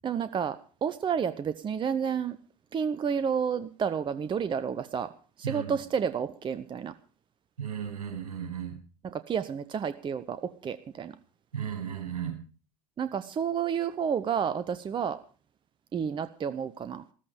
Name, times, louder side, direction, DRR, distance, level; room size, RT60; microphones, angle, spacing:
voice 1, 0.0-2.4 2.7-5.1 5.4-6.9 9.0-11.1 13.0-15.2 15.9-17.0, right 7 dB, 25° right, 13 dB, 0.7 m, -30 dB
voice 2, 5.4-5.7 7.6-8.8 11.5-12.3, right 8 dB, 70° right, 5 dB, 4.9 m, -35 dB
14.0 x 14.0 x 5.0 m, 0.38 s
figure-of-eight pair, 70°, 19 cm